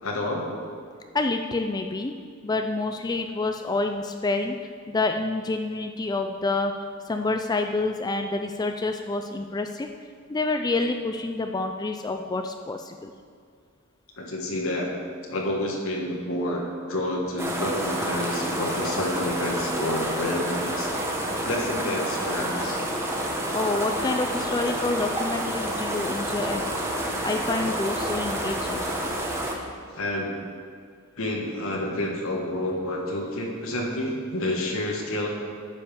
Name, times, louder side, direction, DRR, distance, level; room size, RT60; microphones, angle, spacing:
voice 1, 0.0-0.5 14.2-14.9 15.3-20.9 21.4-22.8 29.9-30.4 31.2-35.3, left 1 dB, 75° left, -1 dB, 1.5 m, -29 dB
voice 2, 1.1-2.1 2.4-6.7 7.1-9.9 10.3-13.1 23.5-26.6 27.2-28.9, left 3 dB, 20° left, 5 dB, 0.4 m, -28 dB
sound 1, 17.4-29.5, right 1 dB, 15° right, 1.1 m, -29 dB
9.9 x 5.6 x 6.9 m, 2.2 s
head